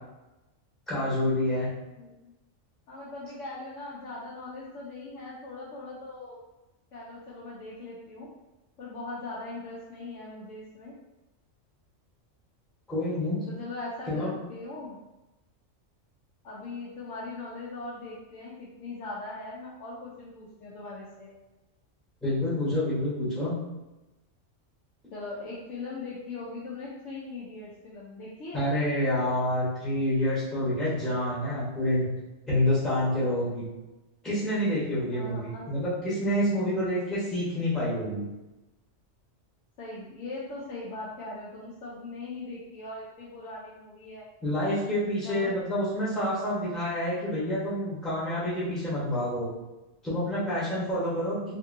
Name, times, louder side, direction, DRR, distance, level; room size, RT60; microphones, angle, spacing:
voice 1, 0.9-1.7 12.9-13.4 14.1-14.3 22.2-23.5 28.5-32.1 32.5-33.7 34.2-38.2 44.4-49.5 50.0-51.4, left 1 dB, ahead, -9 dB, 0.9 m, -28 dB
voice 2, 2.0-2.3 2.9-6.4 6.9-8.3 8.8-10.9 13.5-15.0 16.4-21.3 25.1-28.7 35.1-35.9 39.8-44.3 45.2-45.5, left 2 dB, 80° left, -7 dB, 1.0 m, -40 dB
2.6 x 2.6 x 2.5 m, 1.0 s
omnidirectional pair, 1.3 m